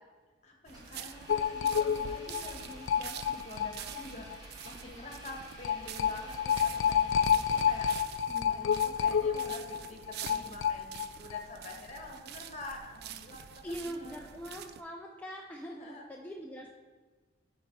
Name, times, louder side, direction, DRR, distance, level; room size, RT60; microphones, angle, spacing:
voice 1, 0.4-7.9 8.4-14.2 15.8-16.0, left 2 dB, 35° left, 1 dB, 1.4 m, -47 dB
Engine, 0.7-8.5, equal, 20° right, 1.7 m, -51 dB
sound 1, 0.7-14.8, right 9 dB, 55° right, 0.4 m, -47 dB
sound 2, 1.3-4.0 4.3-4.4 4.7-4.8 5.6-11.4 11.7-11.8 12.0-12.1, left 8 dB, 70° left, 0.3 m, -29 dB
voice 2, 8.3-8.6 13.6-16.7, equal, 10° left, -1 dB, 0.4 m, -42 dB
8.4 x 4.5 x 4.6 m, 1.4 s
head